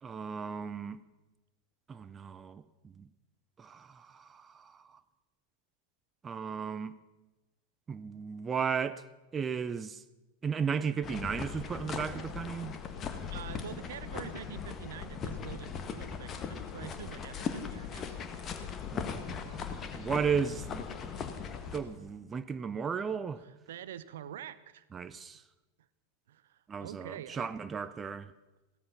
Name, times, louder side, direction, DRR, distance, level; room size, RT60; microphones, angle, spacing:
voice 1, 0.0-1.0 1.9-3.1 3.6-5.0 6.2-7.0 7.9-9.0 9.3-10.0 10.4-12.8 18.9-19.2 19.5-20.9 21.7-23.4 24.9-25.4 26.7-28.3, right 6 dB, 20° right, 0.6 m, -35 dB
sound 1, 11.0-21.8, left 6 dB, 25° left, 1.4 m, -39 dB
voice 2, 13.3-18.2 23.4-24.8 25.3-25.4 26.3-27.5, right 10 dB, 60° right, 0.7 m, -46 dB
16.0 x 13.5 x 5.7 m
figure-of-eight pair, 90°, 0 cm